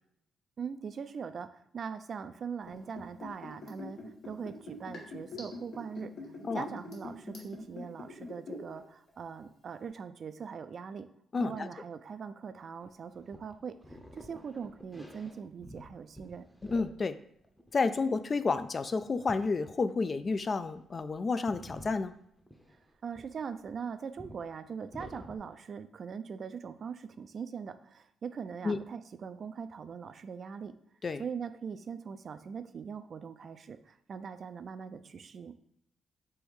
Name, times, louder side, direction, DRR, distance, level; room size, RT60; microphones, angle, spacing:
voice 1, 0.6-6.1 6.5-11.1 11.4-16.4 23.0-30.7 31.2-35.5, right 6 dB, 55° right, 11 dB, 0.3 m, -41 dB
Liquid, 2.6-8.8 9.1-9.2, left 3 dB, 70° left, 1.4 m, -44 dB
voice 2, 11.3-11.7 16.7-17.2 17.7-22.1 28.6-28.8 31.0-31.2, left 4 dB, 40° left, 11 dB, 0.3 m, -30 dB
sound 1, 12.8-17.1 17.4-18.0 19.3-19.7 20.3-20.4 20.8-21.1 21.5-23.8 24.2-24.4 24.9-25.4, equal, 5° left, 0.7 m, -49 dB
3.4 x 3.1 x 4.7 m, 0.73 s
cardioid pair, 85°, 0 cm